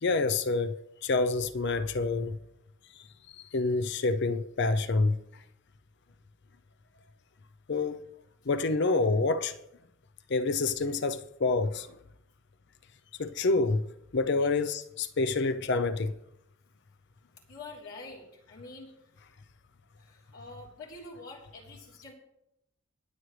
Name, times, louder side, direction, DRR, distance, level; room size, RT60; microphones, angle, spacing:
voice 1, 0.0-0.8 1.0-2.4 3.0-5.2 7.7-8.0 8.5-9.6 10.3-12.0 13.2-13.9 14.1-16.1, left 3 dB, 55° left, 0.5 m, -27 dB
voice 2, 17.5-18.9 20.0-22.1, left 3 dB, 85° left, 3.5 m, -46 dB
22.5 x 7.7 x 3.2 m
head